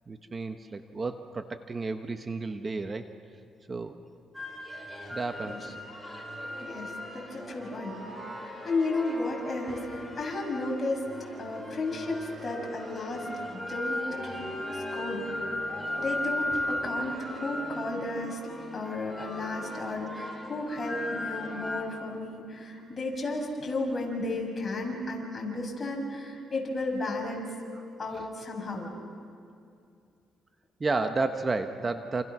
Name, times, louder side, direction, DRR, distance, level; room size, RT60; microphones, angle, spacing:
voice 1, 0.1-3.1 3.7-4.0 5.1-5.8 27.7-27.9 28.1-28.2 30.8-32.2, right 3 dB, 30° right, 8 dB, 1.2 m, -32 dB
sound 1, 4.3-21.8, left 1 dB, 5° right, 5.6 m, -37 dB
voice 2, 6.6-7.9 8.6-11.0 11.4-13.3 13.5-14.4 14.7-15.2 16.0-18.4 18.7-27.5 28.0-28.9, left 2 dB, 30° left, 0 dB, 6.3 m, -33 dB
28.0 x 28.0 x 6.2 m, 2.4 s
cardioid pair, 90°, 0 cm